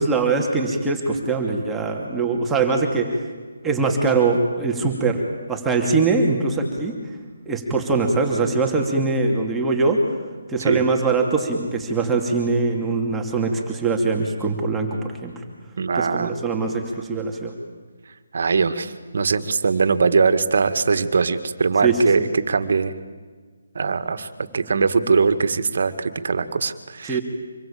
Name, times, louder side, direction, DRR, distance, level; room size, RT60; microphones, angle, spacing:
voice 1, 0.0-3.2 3.6-5.2 5.5-6.9 7.5-10.0 10.5-15.3 15.9-17.5 21.8-22.0 27.0-27.2, right 4 dB, 5° right, 0 dB, 2.6 m, -22 dB
voice 2, 15.8-16.3 18.3-22.9 23.8-24.3 24.5-27.2, right 5 dB, 60° right, 10 dB, 2.0 m, -21 dB
26.5 x 22.5 x 8.7 m, 1.5 s
hypercardioid pair, 160°, 0 cm